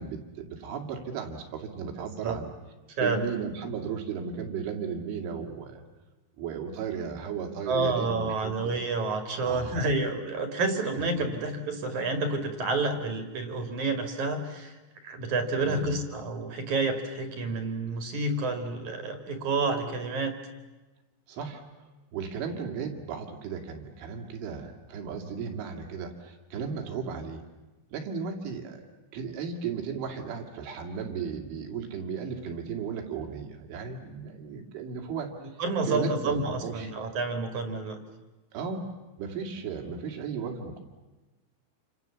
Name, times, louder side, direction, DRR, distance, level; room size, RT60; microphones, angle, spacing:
voice 1, 0.0-2.5 3.0-5.8 6.4-8.7 9.5-9.9 15.6-16.0 21.3-21.6 22.1-27.4 27.9-28.8 29.1-35.3 35.9-36.9 38.5-38.9 39.2-40.8, right 6 dB, 85° right, 3 dB, 5.1 m, -35 dB
voice 2, 2.0-2.4 3.0-3.2 7.7-14.8 15.0-20.4 35.6-38.0, right 3 dB, 50° right, 6 dB, 2.9 m, -29 dB
28.5 x 27.0 x 7.2 m, 1.2 s
omnidirectional pair, 5.4 m